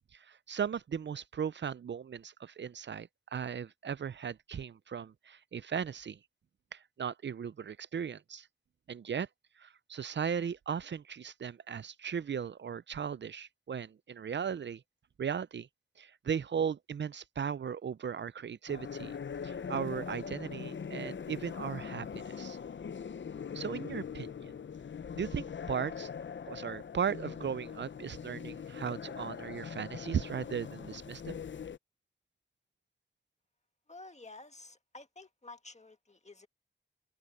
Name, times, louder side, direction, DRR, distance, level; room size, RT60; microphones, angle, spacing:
voice 1, 0.1-6.2 6.7-8.5 8.9-9.3 9.6-14.8 15.2-15.7 16.0-19.1 19.4-22.6 23.5-24.5 25.2-26.1 26.5-31.4, right 7 dB, 75° right, 0.4 m, -37 dB
sound 1, 18.7-31.8, left 7 dB, 90° left, 0.5 m, -42 dB
voice 2, 33.9-36.5, left 2 dB, 40° left, 1.8 m, -51 dB
wide cardioid pair, 55°, 19 cm